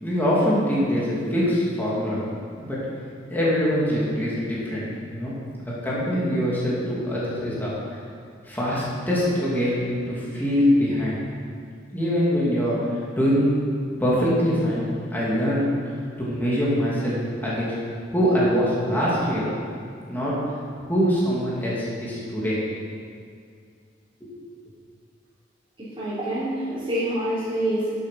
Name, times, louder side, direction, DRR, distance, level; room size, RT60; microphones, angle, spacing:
voice 1, 0.0-2.2 2.6-2.8 3.3-5.3 5.6-7.7 8.4-9.7 10.1-11.2 11.9-12.8 13.2-13.5 14.0-14.8 15.1-15.7 16.2-17.7 18.1-19.5 20.1-20.4 20.9-22.6 24.2-24.3, equal, 10° left, -8 dB, 2.7 m, -23 dB
voice 2, 25.8-27.9, right 1 dB, 30° right, -13 dB, 3.4 m, -26 dB
11.5 x 8.4 x 5.8 m, 2.3 s
head